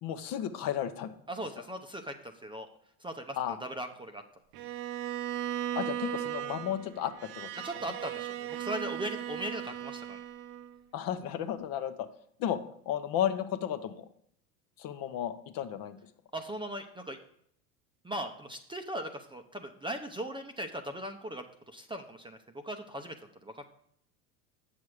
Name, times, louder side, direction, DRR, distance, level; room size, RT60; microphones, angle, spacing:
voice 1, 0.0-1.1 3.4-3.6 5.8-7.5 10.9-12.1 12.4-12.6 12.9-14.1 14.8-16.0, left 10 dB, 45° left, 9 dB, 0.8 m, -33 dB
voice 2, 1.3-2.7 3.0-4.2 7.6-10.2 16.3-17.2 18.0-23.2 23.4-23.6, right 1 dB, 10° right, 6 dB, 0.7 m, -39 dB
Bowed string instrument, 4.5-10.8, right 12 dB, 55° right, 0.8 m, -37 dB
8.4 x 6.2 x 4.9 m, 0.68 s
hypercardioid pair, 95°, 47 cm